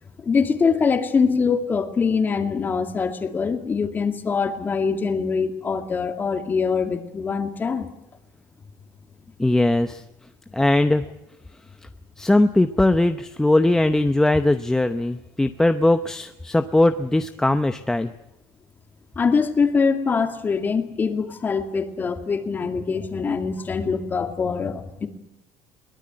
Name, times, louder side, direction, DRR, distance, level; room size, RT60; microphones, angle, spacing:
voice 1, 0.2-7.9 19.2-25.1, left 5 dB, 25° left, 7 dB, 2.3 m, -23 dB
voice 2, 9.4-10.0 10.5-11.0 12.2-18.1, left 1 dB, 5° left, 9 dB, 0.7 m, -20 dB
22.5 x 18.0 x 8.9 m, 0.87 s
cardioid pair, 135°, 8 cm